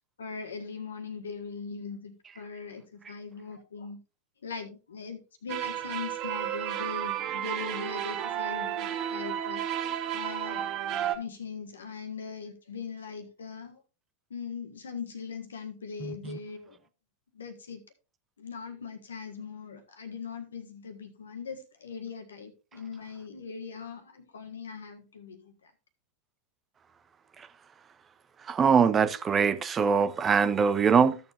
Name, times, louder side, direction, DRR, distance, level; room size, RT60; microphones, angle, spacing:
voice 1, 0.2-4.0 4.4-10.7 11.1-13.8 14.3-16.8 17.3-17.8 18.4-25.7, left 5 dB, 70° left, 1.5 m, -40 dB
sound 1, 5.5-11.1, right 11 dB, 40° right, 1.1 m, -32 dB
voice 2, 16.0-16.4 28.5-31.2, right 6 dB, 20° right, 0.7 m, -23 dB
14.5 x 6.9 x 2.6 m
figure-of-eight pair, 90°, 0 cm